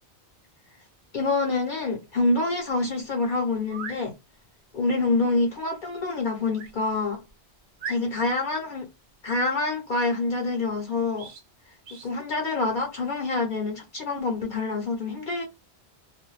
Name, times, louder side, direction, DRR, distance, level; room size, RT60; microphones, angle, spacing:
voice 1, 1.1-4.1 4.7-7.2 7.9-8.9 9.2-11.3 12.0-15.5, left 3 dB, 55° left, 0.7 m, -26 dB
sound 1, 3.6-4.0 6.5-6.8 7.3-7.4 7.8-8.4 11.1-11.4 11.8-12.1, right 5 dB, 85° right, 0.9 m, -39 dB
2.4 x 2.1 x 3.0 m
omnidirectional pair, 1.1 m